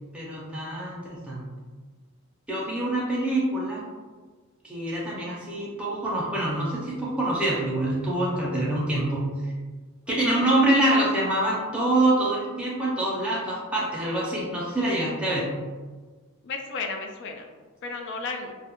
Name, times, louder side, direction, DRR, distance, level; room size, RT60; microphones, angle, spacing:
voice 1, 0.1-1.5 2.5-3.8 4.6-9.5 10.1-15.5, right 1 dB, 5° right, -6 dB, 0.5 m, -25 dB
voice 2, 10.1-10.4 16.4-17.5 17.8-18.5, left 4 dB, 55° left, 4 dB, 0.3 m, -33 dB
2.3 x 2.1 x 2.9 m, 1.4 s
head